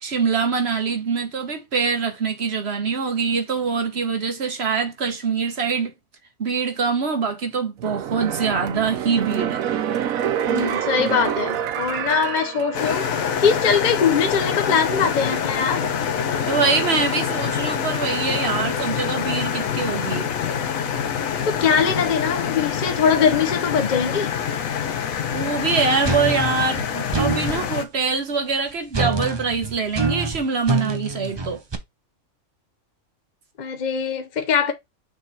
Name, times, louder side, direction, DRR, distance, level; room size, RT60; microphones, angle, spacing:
voice 1, 0.0-5.9 6.4-9.7 16.5-20.3 25.3-31.6, right 5 dB, 50° right, 1.5 m, -24 dB
sound 1, 7.8-13.4 13.7-13.8, right 9 dB, 85° right, 1.2 m, -27 dB
voice 2, 10.5-15.9 21.4-24.3 33.6-34.7, left 6 dB, 35° left, 1.0 m, -22 dB
sound 2, 12.7-27.8, left 7 dB, 85° left, 1.2 m, -26 dB
sound 3, 26.0-27.6 28.9-31.7, right 3 dB, 25° right, 0.6 m, -25 dB
6.4 x 3.5 x 4.2 m
omnidirectional pair, 1.4 m